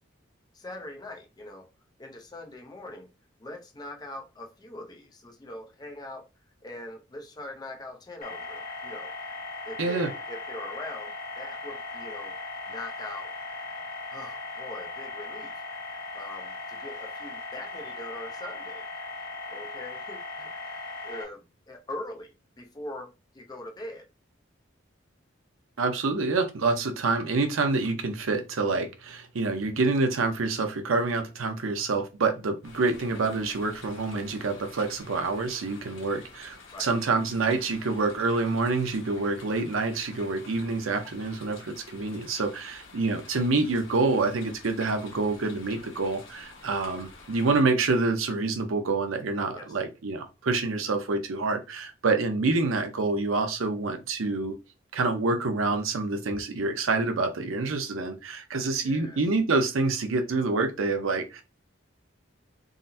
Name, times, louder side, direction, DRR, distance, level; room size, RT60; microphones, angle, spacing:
voice 1, 0.5-1.7 2.0-3.1 3.4-6.3 6.6-9.1 9.7-12.4 12.7-13.3 14.1-15.6 16.1-18.9 19.5-24.1 36.7-36.9 49.5-49.8 58.8-59.2, left 1 dB, 20° left, 0.4 m, -42 dB
sound 1, 8.2-21.2, left 3 dB, 50° left, 0.9 m, -38 dB
voice 2, 9.8-10.1 25.8-54.5 54.9-61.4, right 3 dB, 90° right, 0.6 m, -27 dB
sound 2, 32.6-47.6, left 3 dB, 85° left, 1.0 m, -49 dB
3.7 x 2.1 x 2.6 m
head